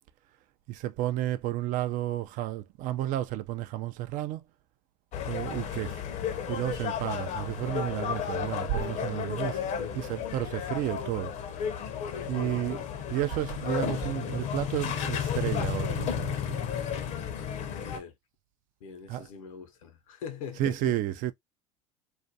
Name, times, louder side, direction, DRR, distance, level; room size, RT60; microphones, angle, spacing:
voice 1, 0.7-4.4 5.3-6.0 6.5-9.6 9.9-11.3 12.3-12.8 13.1-16.7 19.1-19.3 20.6-21.3, right 13 dB, 50° right, 0.4 m, -32 dB
sound 1, 5.1-18.0, left 8 dB, 45° left, 0.6 m, -33 dB
voice 2, 17.8-18.1 18.8-21.0, left 6 dB, 80° left, 0.7 m, -42 dB
2.4 x 2.2 x 2.6 m
hypercardioid pair, 95°, 17 cm